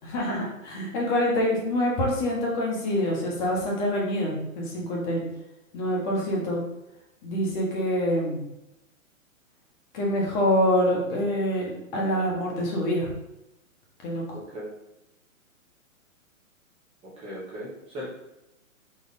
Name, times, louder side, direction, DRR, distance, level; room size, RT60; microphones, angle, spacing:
voice 1, 0.0-5.3 5.7-6.6 7.2-8.4 9.9-13.1 14.0-14.2, left 1 dB, 35° left, -2 dB, 1.2 m, -26 dB
voice 2, 14.3-14.7 17.2-18.1, equal, 15° right, -7 dB, 0.9 m, -37 dB
4.2 x 2.4 x 4.0 m, 0.89 s
hypercardioid pair, 130°, 41 cm